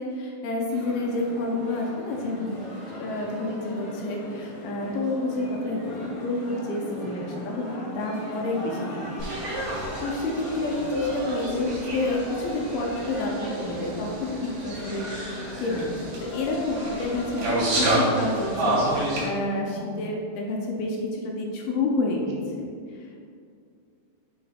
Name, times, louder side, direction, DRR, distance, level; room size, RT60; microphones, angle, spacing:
voice 1, 0.0-2.6 2.9-9.2 9.7-15.9 16.3-22.4 22.9-23.1, left 2 dB, 80° left, 0 dB, 2.2 m, -29 dB
sound 1, 0.7-19.0, left 1 dB, 60° left, 1.9 m, -38 dB
voice 2, 7.0-7.5 10.8-10.9 19.7-20.2, right 2 dB, 75° right, -2 dB, 2.5 m, -43 dB
sound 2, 9.2-19.2, right 1 dB, 60° right, 2.0 m, -29 dB
6.5 x 4.2 x 3.6 m, 2.3 s
omnidirectional pair, 5.0 m